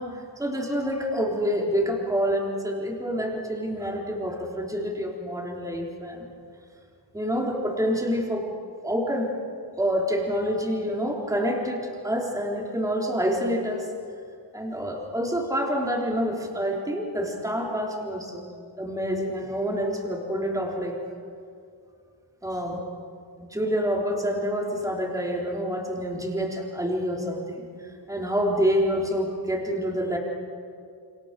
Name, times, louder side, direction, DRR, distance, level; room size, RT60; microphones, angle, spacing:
voice 1, 0.0-6.3 7.1-8.5 8.8-9.3 9.8-13.9 14.5-18.5 18.8-21.0 22.4-22.8 23.4-30.2, equal, 10° right, -1 dB, 3.6 m, -27 dB
28.0 x 28.0 x 6.7 m, 2.4 s
wide cardioid pair, 155°, 43 cm